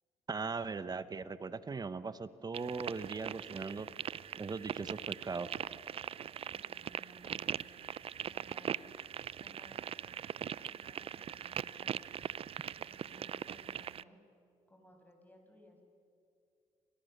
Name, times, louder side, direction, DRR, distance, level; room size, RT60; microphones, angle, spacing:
voice 1, 0.3-3.9 4.4-5.5, right 4 dB, 30° right, 14 dB, 1.1 m, -39 dB
sound 1, 2.5-14.0, right 9 dB, 50° right, 0.5 m, -41 dB
voice 2, 6.5-7.7 8.2-8.9 9.4-12.3 12.8-14.2 14.7-15.8, equal, 15° left, 3 dB, 6.2 m, -61 dB
30.0 x 25.0 x 6.8 m, 2.5 s
cardioid pair, 80°, 13 cm